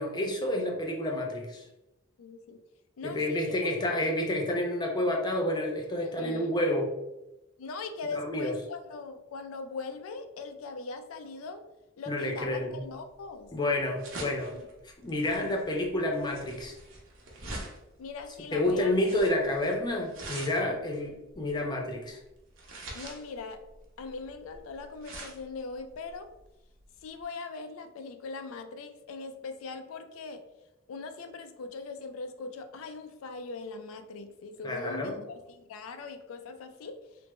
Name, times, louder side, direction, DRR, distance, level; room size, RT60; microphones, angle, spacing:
voice 1, 0.0-1.6 3.0-6.9 8.1-8.5 12.1-12.9 13.5-14.5 15.0-16.7 18.5-22.2 34.6-35.1, left 1 dB, 20° left, 1 dB, 0.4 m, -29 dB
voice 2, 2.2-2.6 3.0-3.7 6.0-6.5 7.6-11.6 12.0-13.5 14.5-14.7 18.0-19.1 22.9-23.6 24.0-26.3 27.0-30.4 30.9-37.0, left 4 dB, 85° left, 7 dB, 0.4 m, -40 dB
sound 1, 12.5-27.2, right 2 dB, 65° right, 0.7 m, -45 dB
3.3 x 2.0 x 3.0 m, 0.93 s
head